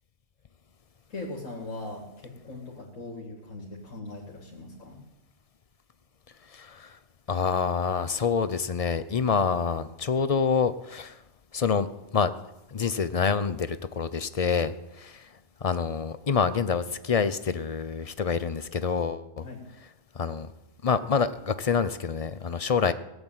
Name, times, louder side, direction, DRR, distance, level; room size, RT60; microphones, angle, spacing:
voice 1, 1.1-5.0 19.4-19.6, left 2 dB, 90° left, -1 dB, 2.8 m, -40 dB
voice 2, 6.5-7.0 7.3-11.2 11.5-11.9 12.1-12.3 12.7-15.3 15.6-19.4 20.1-20.5 20.8-22.9, left 5 dB, 40° left, 13 dB, 0.5 m, -27 dB
18.0 x 8.0 x 9.1 m, 0.92 s
omnidirectional pair, 1.3 m